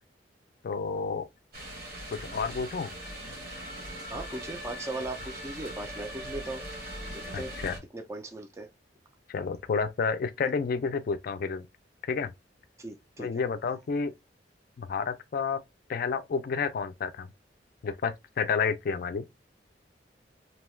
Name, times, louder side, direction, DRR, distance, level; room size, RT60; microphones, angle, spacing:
voice 1, 0.6-1.3 2.1-2.9 7.3-7.7 9.3-11.6 12.1-12.3 13.2-14.1 14.8-15.6 15.9-17.3 17.8-19.2, left 5 dB, 50° left, 0.4 m, -30 dB
sound 1, 1.5-7.8, equal, 55° right, 1.1 m, -40 dB
voice 2, 4.1-6.6 7.1-7.6 7.9-8.7 12.8-13.4, right 2 dB, 15° right, 0.4 m, -38 dB
2.8 x 2.2 x 3.0 m
head